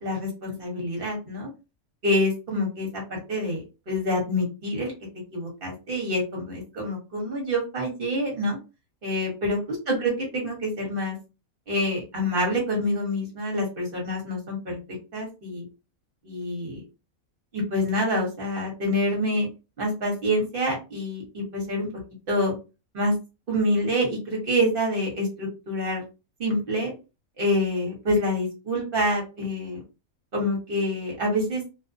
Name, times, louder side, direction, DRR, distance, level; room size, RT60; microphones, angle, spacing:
voice 1, 0.0-1.5 2.0-4.9 5.3-8.6 9.0-9.6 9.9-11.2 11.7-14.8 15.1-15.6 16.2-16.8 17.5-19.5 19.8-21.9 22.3-22.5 22.9-23.1 23.5-26.0 26.4-26.9 27.4-29.8 30.3-31.6, equal, 40° right, 0 dB, 1.2 m, -26 dB
2.6 x 2.0 x 2.5 m, 0.29 s
omnidirectional pair, 1.5 m